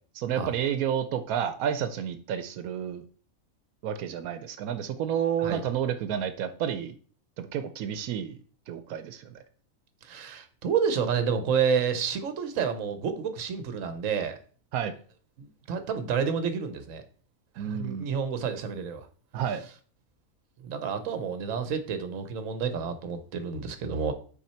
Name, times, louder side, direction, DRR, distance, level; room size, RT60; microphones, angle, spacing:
voice 1, 0.1-3.0 3.8-6.9 7.4-8.4 8.7-9.3 14.7-14.9 17.6-18.1 19.3-19.6, right 9 dB, 90° right, 9 dB, 1.1 m, -30 dB
voice 2, 10.0-14.4 15.4-17.0 17.5-19.1 20.6-24.1, right 6 dB, 70° right, 9 dB, 1.2 m, -29 dB
5.8 x 4.3 x 4.3 m, 0.43 s
omnidirectional pair, 1.5 m